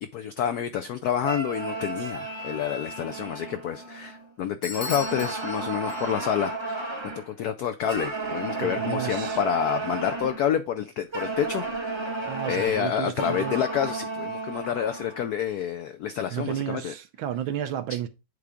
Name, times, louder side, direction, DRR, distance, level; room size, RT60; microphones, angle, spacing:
voice 1, 0.1-6.9 7.2-11.6 12.4-16.9, left 9 dB, 85° left, 0.8 m, -28 dB
sound 1, 1.2-4.3 4.7-7.3 7.8-10.5 11.1-15.3, right 3 dB, 20° right, 0.9 m, -33 dB
Bell / Doorbell, 4.6-6.5, left 3 dB, 35° left, 1.8 m, -38 dB
voice 2, 8.6-9.4 12.3-13.6 16.3-18.1, right 10 dB, 75° right, 1.4 m, -32 dB
8.5 x 3.5 x 5.0 m
omnidirectional pair, 2.3 m